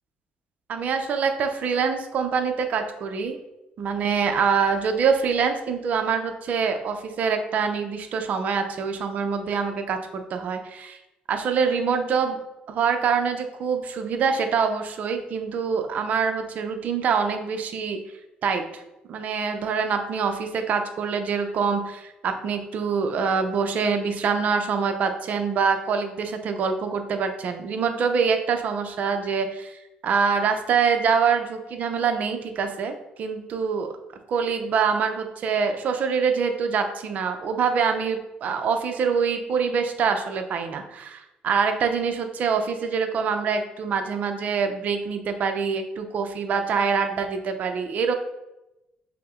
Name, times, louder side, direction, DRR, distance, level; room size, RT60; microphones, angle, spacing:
voice 1, 0.7-3.4 3.8-11.0 11.3-12.4 12.7-18.0 18.4-18.6 19.1-33.9 34.3-48.1, right 6 dB, 55° right, 6 dB, 0.5 m, -25 dB
5.6 x 2.1 x 3.6 m, 0.94 s
cardioid pair, 125°, 3 cm